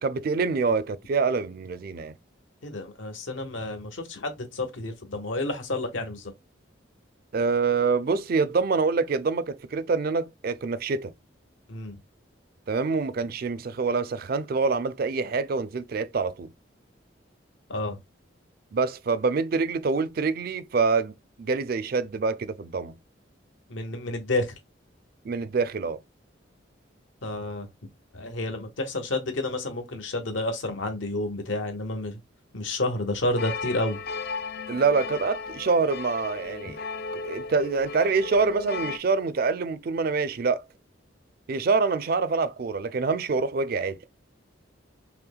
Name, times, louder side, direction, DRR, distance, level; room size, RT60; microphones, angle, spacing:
voice 1, 0.0-2.1 7.3-11.1 12.7-16.5 18.7-22.9 25.2-26.0 34.7-36.8 37.1-40.6 41.5-44.0, right 4 dB, 50° right, 0.4 m, -26 dB
voice 2, 2.6-6.3 11.7-12.0 17.7-18.0 23.7-24.5 27.2-27.7 28.1-32.2 32.5-34.0, left 2 dB, 80° left, 1.1 m, -30 dB
sound 1, 33.4-39.0, left 4 dB, 55° left, 0.4 m, -35 dB
5.6 x 2.1 x 2.3 m
head